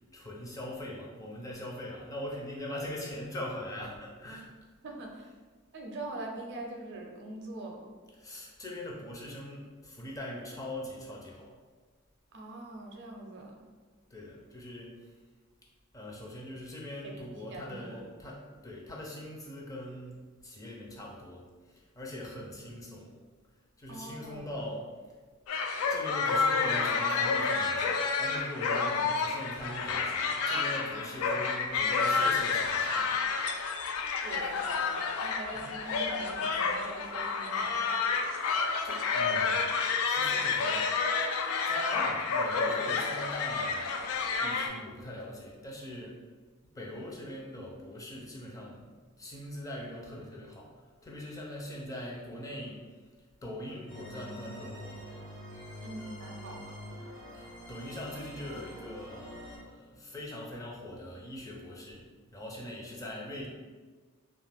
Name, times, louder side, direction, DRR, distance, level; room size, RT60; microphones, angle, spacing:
voice 1, 0.1-4.6 8.2-11.5 14.1-15.1 15.9-23.1 23.8-24.9 25.8-33.2 35.5-35.8 36.3-36.5 38.5-40.9 41.7-44.1 44.4-46.3 46.6-48.9 49.2-53.0 53.4-55.1 57.3-62.1 62.3-63.5, left 1 dB, 15° left, -2 dB, 0.5 m, -42 dB
voice 2, 4.8-5.3 5.7-7.9 12.3-13.7 17.0-17.2 17.5-18.0 23.9-24.5 34.2-37.8 38.1-38.2 55.8-56.8, right 2 dB, 55° right, 1 dB, 0.5 m, -43 dB
sound 1, 25.5-44.7, left 4 dB, 75° left, 0.3 m, -29 dB
sound 2, 53.9-59.6, equal, 60° left, 1.0 m, -45 dB
2.4 x 2.4 x 3.4 m, 1.4 s
head